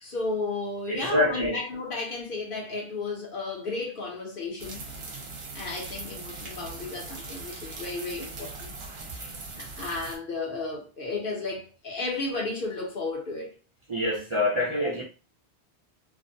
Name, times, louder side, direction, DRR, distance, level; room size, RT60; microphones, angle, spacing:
voice 1, 0.0-4.8 5.5-8.7 9.6-13.6, left 3 dB, 55° left, 0.9 m, -33 dB
voice 2, 0.9-1.6 9.2-9.3 13.9-15.0, left 1 dB, 40° right, 0.5 m, -26 dB
sound 1, 4.6-10.2, right 3 dB, 65° right, 0.9 m, -40 dB
2.5 x 2.1 x 2.6 m
omnidirectional pair, 1.1 m